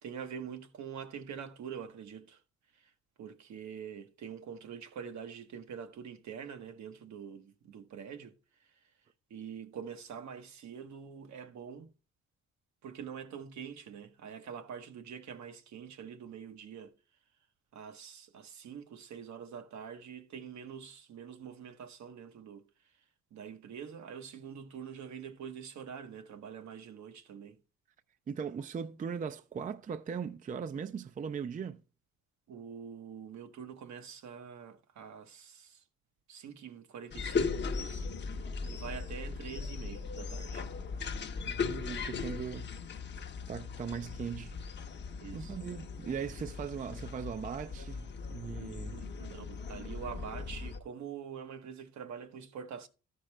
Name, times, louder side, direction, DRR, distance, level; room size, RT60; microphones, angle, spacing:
voice 1, 0.0-2.4 2.7-2.9 3.2-8.3 8.6-8.8 9.3-11.9 12.8-16.9 17.7-22.6 23.3-27.6 32.5-35.8 36.3-38.1 38.3-40.7 45.2-45.6 48.9-52.9, right 7 dB, 65° right, 1.0 m, -45 dB
voice 2, 28.3-31.8 41.5-42.7 43.5-44.8 45.3-49.0, right 6 dB, 25° right, 0.4 m, -39 dB
sound 1, 37.1-50.8, left 5 dB, 35° left, 0.8 m, -38 dB
13.0 x 5.1 x 3.2 m
cardioid pair, 90°, 30 cm